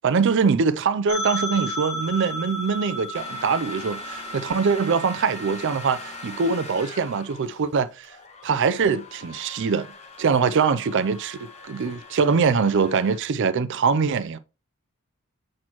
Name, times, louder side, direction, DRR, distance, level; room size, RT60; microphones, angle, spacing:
voice 1, 0.0-8.1 8.4-9.9 10.2-14.4, right 5 dB, 60° right, 0.4 m, -23 dB
sound 1, 1.1-6.7, equal, 65° left, 1.9 m, -34 dB
sound 2, 3.1-13.2, left 2 dB, 30° left, 1.0 m, -41 dB
7.4 x 6.2 x 3.0 m
head